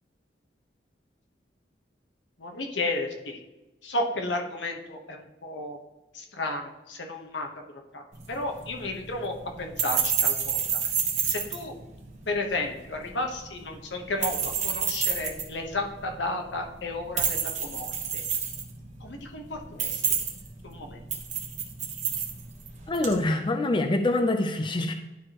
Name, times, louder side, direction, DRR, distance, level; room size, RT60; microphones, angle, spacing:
voice 1, 2.4-3.4 3.8-5.8 6.1-7.5 7.9-8.0 8.3-10.6 11.3-11.7 12.3-18.2 19.0-20.0 20.6-21.0, left 2 dB, 90° left, 3 dB, 1.1 m, -33 dB
sound 1, 8.1-23.2, right 7 dB, 45° right, 1.1 m, -31 dB
voice 2, 22.9-24.9, left 2 dB, 30° left, 5 dB, 0.5 m, -25 dB
11.0 x 4.9 x 2.9 m, 1.1 s
head